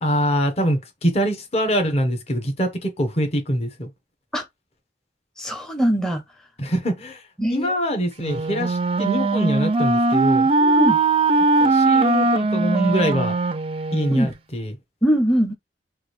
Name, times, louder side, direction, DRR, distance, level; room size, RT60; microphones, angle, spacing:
voice 1, 0.0-3.9 6.6-10.5 11.6-13.4 13.9-14.8, equal, 35° left, 1.1 m, -24 dB
voice 2, 5.4-6.2 7.4-7.7 10.6-11.0 14.1-14.3 15.0-15.5, equal, 5° left, 0.7 m, -21 dB
Wind instrument woodwind instrument, 8.2-14.3, right 3 dB, 30° right, 0.4 m, -20 dB
6.0 x 2.6 x 3.2 m
head